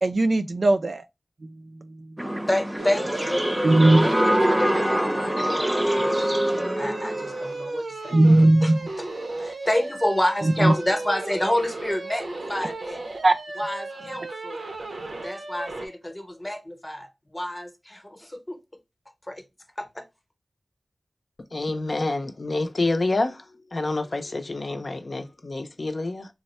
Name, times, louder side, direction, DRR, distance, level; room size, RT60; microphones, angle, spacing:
voice 1, 0.0-1.0 1.4-1.5 2.0-2.1 3.6-4.1 8.1-8.8 10.4-10.7 13.2-13.3, right 2 dB, 65° right, 0.4 m, -18 dB
sound 1, 2.2-7.5, equal, 10° right, 0.5 m, -24 dB
voice 2, 2.5-3.3 4.0-4.2 4.5-6.1 6.8-8.2 8.6-8.7 9.4-13.0 13.6-14.6 15.2-17.1 17.3-18.6 19.3-19.4 19.8-20.0, left 1 dB, 20° left, 0.8 m, -28 dB
sound 2, 2.8-15.9, right 2 dB, 85° right, 0.8 m, -35 dB
voice 3, 21.5-23.4 23.7-26.3, left 2 dB, 55° left, 0.5 m, -27 dB
3.5 x 2.1 x 4.1 m
wide cardioid pair, 60°, 0 cm